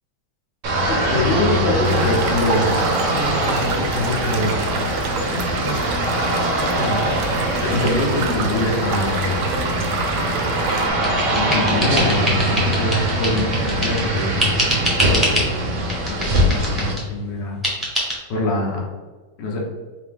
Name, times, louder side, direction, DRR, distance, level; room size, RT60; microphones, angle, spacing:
sound 1, 0.6-16.9, right 1 dB, 55° right, 1.0 m, -22 dB
voice 1, 0.9-2.8 3.1-4.6 5.5-5.8 6.5-9.4 11.3-14.6 15.1-15.5 16.1-17.6 18.3-18.8 19.4-19.6, left 1 dB, 70° left, -1 dB, 1.6 m, -24 dB
sound 2, 1.8-10.9, right 4 dB, 75° right, 0.7 m, -29 dB
sound 3, 10.4-14.1 14.4-15.5 15.9-17.1 17.6-18.2, equal, ahead, 1.0 m, -24 dB
4.8 x 2.7 x 3.6 m, 1.3 s
omnidirectional pair, 2.0 m